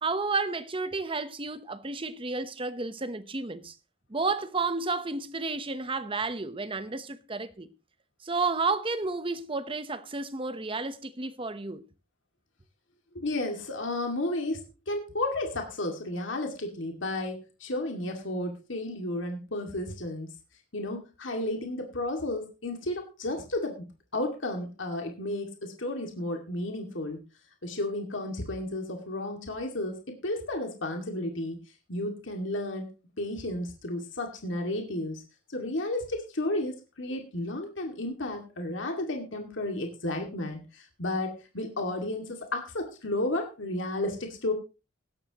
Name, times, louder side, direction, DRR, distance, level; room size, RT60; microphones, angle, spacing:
voice 1, 0.0-3.7 4.1-7.7 8.2-11.8, right 3 dB, 25° right, 0.9 m, -31 dB
voice 2, 13.1-20.3 20.7-23.8 24.1-27.2 27.6-31.6 31.9-32.9 33.2-35.2 35.5-44.5, left 1 dB, 65° left, 2.3 m, -32 dB
17.0 x 12.5 x 3.0 m
head